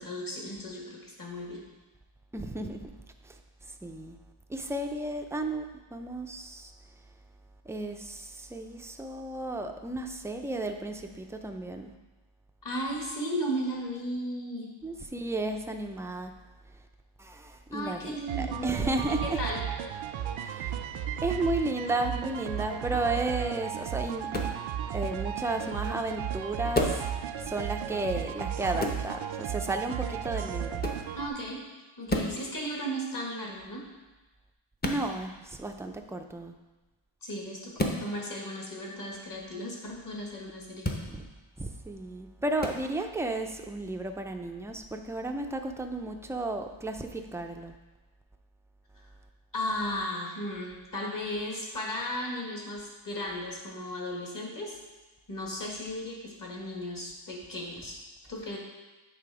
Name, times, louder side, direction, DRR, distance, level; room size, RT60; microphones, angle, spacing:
voice 1, 0.0-1.6 12.6-14.7 17.7-18.7 19.2-19.6 31.2-31.6 32.0-33.8 37.2-40.9 49.5-54.8 55.3-58.0 58.3-58.6, equal, 40° left, -1 dB, 1.7 m, -35 dB
voice 2, 2.3-2.9 3.3-3.4 3.8-4.2 4.5-6.7 7.7-11.9 14.8-16.3 17.2-19.4 20.4-20.8 21.2-24.3 24.9-27.1 27.4-30.8 34.8-36.5 41.1-41.2 41.6-47.7, right 2 dB, 5° right, 4 dB, 0.3 m, -33 dB
sound 1, 18.3-31.3, right 9 dB, 70° right, 0.5 m, -34 dB
sound 2, 24.3-24.6 26.7-27.1 28.8-29.0 30.8-31.1 32.1-32.4 34.8-35.0 37.8-38.0 40.8-41.1 42.6-42.8, left 1 dB, 20° left, 0.7 m, -30 dB
8.6 x 3.4 x 4.8 m, 1.2 s
wide cardioid pair, 115°, 49 cm